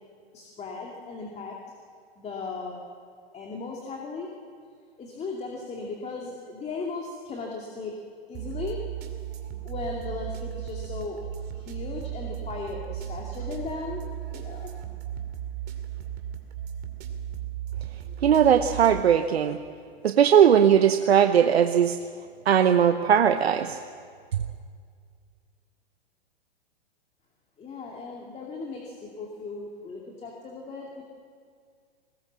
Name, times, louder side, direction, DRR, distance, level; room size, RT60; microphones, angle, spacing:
voice 1, 0.3-1.6 2.2-2.8 3.3-4.3 5.0-8.0 8.3-8.8 9.6-11.2 11.6-14.0 14.3-14.7 27.6-31.1, left 4 dB, 20° left, -1 dB, 2.5 m, -37 dB
sound 1, 8.3-19.0, right 10 dB, 30° right, 2.4 m, -36 dB
voice 2, 18.2-19.6 20.0-22.0 22.5-23.8 24.3-24.4, right 8 dB, 80° right, 8 dB, 0.9 m, -19 dB
21.0 x 18.0 x 7.5 m, 2.1 s
hypercardioid pair, 110°, 31 cm